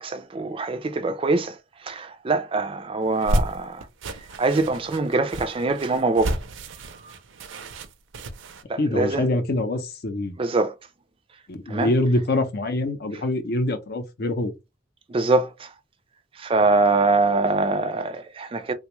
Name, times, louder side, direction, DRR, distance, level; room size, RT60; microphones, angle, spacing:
voice 1, 0.0-1.6 1.9-3.8 4.4-6.4 8.7-9.2 10.4-10.7 11.7-11.9 15.1-15.7 16.4-18.7, right 3 dB, 30° right, 0.4 m, -23 dB
sound 1, 3.0-8.6, right 1 dB, 75° right, 0.5 m, -30 dB
voice 2, 8.8-10.4 11.5-14.5, left 1 dB, 55° left, 0.6 m, -24 dB
3.3 x 2.3 x 3.0 m
head